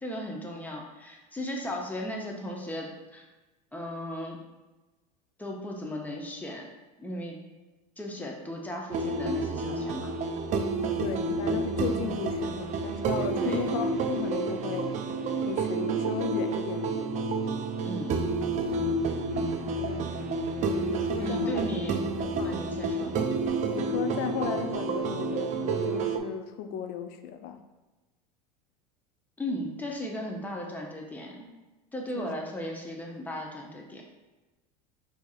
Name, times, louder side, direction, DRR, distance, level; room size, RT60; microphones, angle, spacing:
voice 1, 0.0-3.3 3.7-4.4 5.4-6.7 7.0-7.4 8.0-10.1 13.4-13.7 17.8-18.1 21.2-22.0 22.4-23.2 29.4-31.5 31.9-34.0, left 1 dB, 10° left, 0 dB, 0.7 m, -36 dB
sound 1, 8.9-26.2, right 3 dB, 35° right, 0.4 m, -29 dB
voice 2, 11.0-15.1 15.4-16.9 19.3-20.2 20.8-21.6 22.4-22.6 23.7-27.6 32.2-32.3, left 8 dB, 50° left, 8 dB, 0.4 m, -36 dB
4.5 x 2.8 x 2.4 m, 1.1 s
hypercardioid pair, 90°, 21 cm